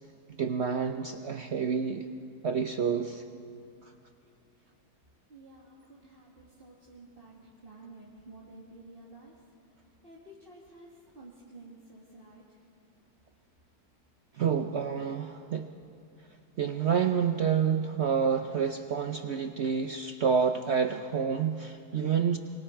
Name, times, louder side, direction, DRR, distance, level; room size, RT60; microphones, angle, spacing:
voice 1, 0.4-2.1 2.4-3.2 14.3-15.7 16.6-22.4, right 7 dB, 60° right, 7 dB, 0.7 m, -28 dB
voice 2, 5.3-9.4 10.0-12.6, right 2 dB, 30° right, -4 dB, 2.2 m, -51 dB
26.0 x 23.5 x 4.6 m, 2.5 s
omnidirectional pair, 1.8 m